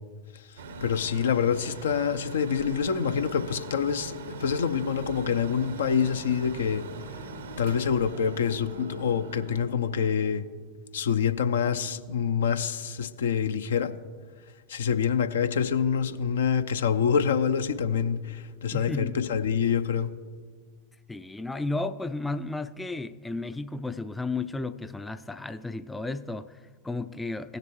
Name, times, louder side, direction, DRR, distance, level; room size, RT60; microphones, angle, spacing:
voice 1, 0.3-6.8 7.6-10.4 10.9-13.9 14.7-20.1, left 7 dB, 65° left, 0.5 m, -26 dB
Mechanical fan, 0.6-9.6, right 3 dB, 65° right, 0.7 m, -42 dB
sound 1, 4.9-10.3, left 2 dB, 85° right, 1.0 m, -46 dB
voice 2, 18.7-19.2 21.1-27.6, left 3 dB, 10° left, 0.3 m, -33 dB
17.0 x 6.7 x 3.1 m
figure-of-eight pair, 90°, 0 cm